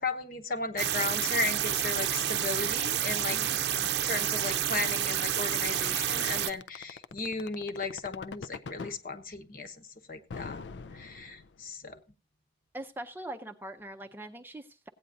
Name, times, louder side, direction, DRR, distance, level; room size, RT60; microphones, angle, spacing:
voice 1, 0.0-3.4 4.0-10.6 10.9-12.0, left 3 dB, 50° left, 1.0 m, -35 dB
sound 1, 0.8-6.5, right 10 dB, 65° right, 0.6 m, -29 dB
voice 2, 3.3-3.9 12.7-14.9, right 1 dB, 10° right, 0.5 m, -42 dB
sound 2, 5.7-9.0 10.3-11.7, left 5 dB, 75° left, 0.5 m, -41 dB
16.5 x 8.9 x 2.6 m
head